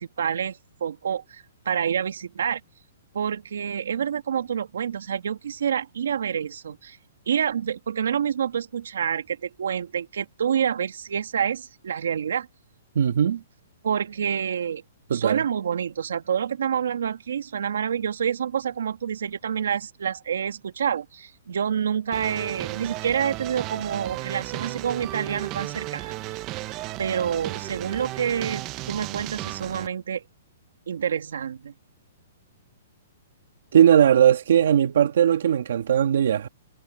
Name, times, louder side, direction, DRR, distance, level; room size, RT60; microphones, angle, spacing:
voice 1, 0.0-2.6 3.1-7.0 7.3-12.5 13.8-14.8 15.1-26.1 27.0-30.2 30.9-31.7, right 8 dB, 80° right, 2.3 m, -28 dB
voice 2, 12.9-13.4 15.1-15.4 33.7-36.5, right 9 dB, 60° right, 1.5 m, -19 dB
sound 1, 22.1-29.9, right 18 dB, 20° right, 0.6 m, -34 dB
hypercardioid pair, 175°, 0 cm